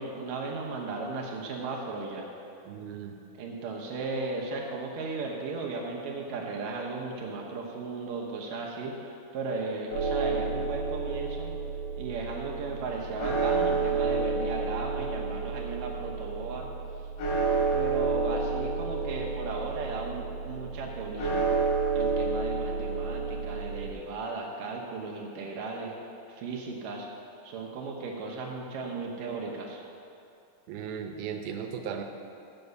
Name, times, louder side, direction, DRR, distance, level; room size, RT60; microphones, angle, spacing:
voice 1, 0.0-2.3 3.4-11.5 12.0-16.7 17.7-21.4 21.9-25.9 26.3-27.1 27.4-29.8, right 3 dB, 70° right, -1 dB, 2.5 m, -36 dB
voice 2, 2.7-3.2 30.7-32.0, right 7 dB, 90° right, 5 dB, 2.7 m, -36 dB
sound 1, 9.9-23.9, right 4 dB, 90° left, 4.2 m, -30 dB
7.9 x 6.9 x 7.9 m, 2.7 s
omnidirectional pair, 4.2 m